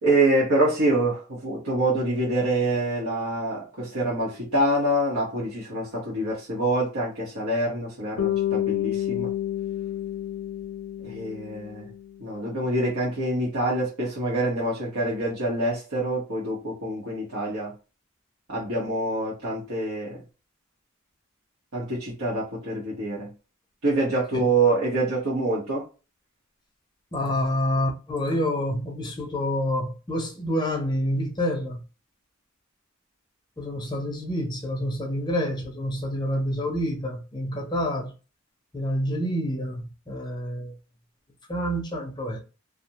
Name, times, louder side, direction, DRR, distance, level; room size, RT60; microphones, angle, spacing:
voice 1, 0.0-9.3 11.0-11.9 12.2-17.7 18.5-20.2 21.7-23.3 23.8-25.9, right 2 dB, 85° right, 0.9 m, -26 dB
Bass guitar, 8.2-12.4, left 12 dB, 70° left, 0.4 m, -29 dB
voice 2, 27.1-31.8 33.6-38.1 38.7-40.8 41.5-42.4, equal, 20° left, 0.5 m, -28 dB
2.4 x 2.1 x 2.8 m
head